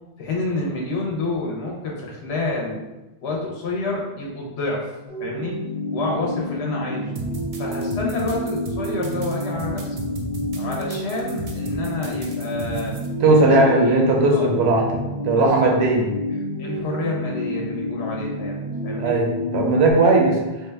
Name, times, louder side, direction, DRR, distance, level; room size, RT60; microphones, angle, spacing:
voice 1, 0.2-2.8 3.2-4.9 5.2-5.6 5.9-7.1 7.6-10.0 10.6-12.9 13.4-14.0 14.3-14.5 15.3-15.7 16.6-18.6 18.8-19.1, left 2 dB, 85° left, -2 dB, 0.9 m, -28 dB
sound 1, 5.1-19.9, left 1 dB, 25° left, 0.7 m, -29 dB
sound 2, 7.1-13.1, right 3 dB, 50° right, 0.4 m, -34 dB
voice 2, 13.2-15.0 15.2-16.0 19.0-20.4, right 2 dB, 85° right, 0 dB, 0.9 m, -17 dB
3.3 x 2.2 x 3.3 m, 1.0 s
omnidirectional pair, 1.1 m